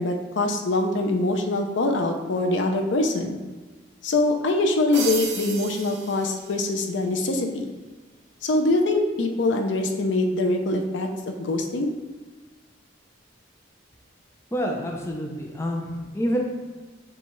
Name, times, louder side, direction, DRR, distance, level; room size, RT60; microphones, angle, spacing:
voice 1, 0.0-3.4 4.0-7.7 8.4-11.9, left 2 dB, 70° left, 4 dB, 0.5 m, -24 dB
sound 1, 4.9-7.0, right 5 dB, 60° right, 0.7 m, -34 dB
voice 2, 14.5-16.4, equal, 15° left, 0 dB, 0.5 m, -28 dB
7.0 x 2.4 x 3.0 m, 1.3 s
head